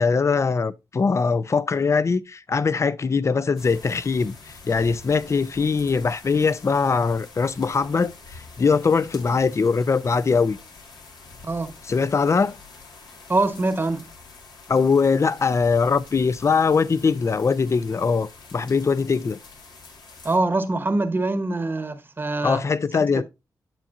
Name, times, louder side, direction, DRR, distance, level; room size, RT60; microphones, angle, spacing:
voice 1, 0.0-10.6 11.9-12.6 14.7-19.4 22.4-23.2, left 5 dB, 45° left, 0.5 m, -21 dB
sound 1, 3.6-20.4, left 4 dB, 85° left, 1.9 m, -46 dB
voice 2, 13.3-14.1 20.2-22.6, right 2 dB, 30° right, 1.0 m, -24 dB
8.8 x 7.0 x 2.5 m
cardioid pair, 80°, 7 cm